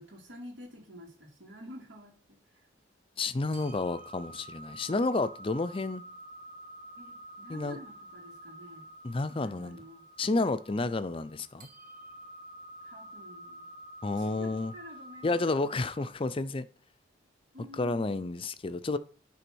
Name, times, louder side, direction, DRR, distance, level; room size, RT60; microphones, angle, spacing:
voice 1, 0.0-2.7 7.0-8.9 9.3-10.0 12.8-13.7 14.1-15.5 17.5-18.2, equal, 85° right, 2.7 m, -49 dB
voice 2, 3.2-6.0 7.5-7.8 9.0-9.8 10.2-11.7 14.0-14.7 15.2-16.7 17.8-19.0, left 3 dB, 30° left, 0.5 m, -30 dB
sound 1, 3.5-16.1, right 1 dB, 45° right, 1.4 m, -49 dB
9.9 x 3.5 x 6.2 m
head